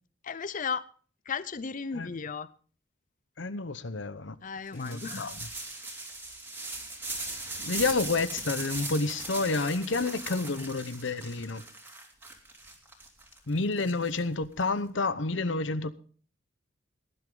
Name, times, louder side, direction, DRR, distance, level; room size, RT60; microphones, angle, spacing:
voice 1, 0.2-0.8 1.3-2.5 4.4-5.3, left 5 dB, 45° left, 0.6 m, -35 dB
voice 2, 3.4-4.4 4.7-5.5 7.6-11.6 13.5-15.9, left 3 dB, 70° left, 0.9 m, -30 dB
sound 1, 4.7-14.6, right 2 dB, 10° right, 2.8 m, -39 dB
18.0 x 11.0 x 3.8 m
head